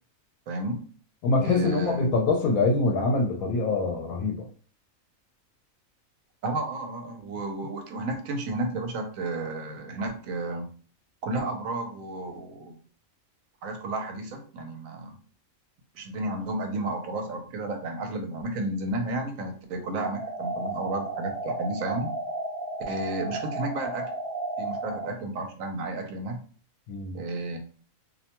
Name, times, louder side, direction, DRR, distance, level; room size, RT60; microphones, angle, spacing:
voice 1, 0.5-0.8 1.4-2.1 6.4-10.7 11.2-12.7 13.6-15.2 15.9-22.1 22.9-24.1 24.6-26.4 27.1-27.6, right 2 dB, 75° right, 5 dB, 1.0 m, -32 dB
voice 2, 1.2-4.5 26.9-27.2, left 3 dB, 85° left, 0 dB, 1.0 m, -24 dB
sound 1, 20.0-25.0, right 2 dB, 10° left, 0.9 m, -33 dB
2.6 x 2.1 x 2.8 m, 0.43 s
omnidirectional pair, 1.5 m